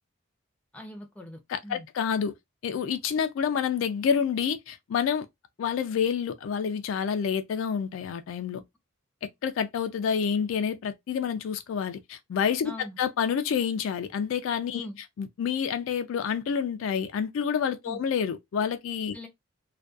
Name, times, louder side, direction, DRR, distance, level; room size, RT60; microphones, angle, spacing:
voice 1, 0.7-1.9 12.6-13.0 14.7-15.0 17.8-18.0 19.1-19.3, left 1 dB, 5° left, 0.5 m, -42 dB
voice 2, 1.5-2.3 2.6-5.3 5.6-8.6 9.4-12.7 13.0-14.9 15.2-19.2, left 7 dB, 70° left, 0.3 m, -28 dB
2.5 x 2.2 x 2.3 m
head